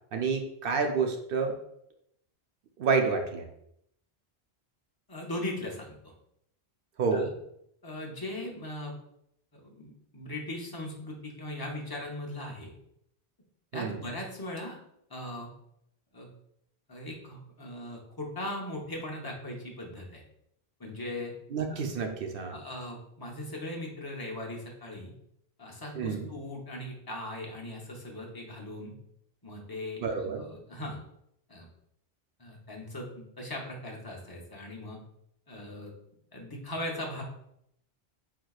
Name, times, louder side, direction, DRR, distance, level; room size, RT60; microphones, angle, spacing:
voice 1, 0.1-1.6 2.8-3.5 7.0-7.3 13.7-14.0 21.5-22.6 25.9-26.3 30.0-30.5, right 5 dB, 65° right, 4 dB, 0.7 m, -29 dB
voice 2, 5.1-6.1 7.1-7.3 7.8-8.9 9.5-12.7 13.7-14.8 15.1-15.5 16.1-16.3 16.9-20.2 20.8-21.3 22.5-25.1 25.6-28.9 29.4-31.0 31.5-31.7 32.4-35.0 35.5-35.9 36.3-37.2, left 1 dB, 25° left, -2 dB, 0.7 m, -39 dB
4.6 x 3.8 x 2.3 m, 0.75 s
omnidirectional pair, 1.1 m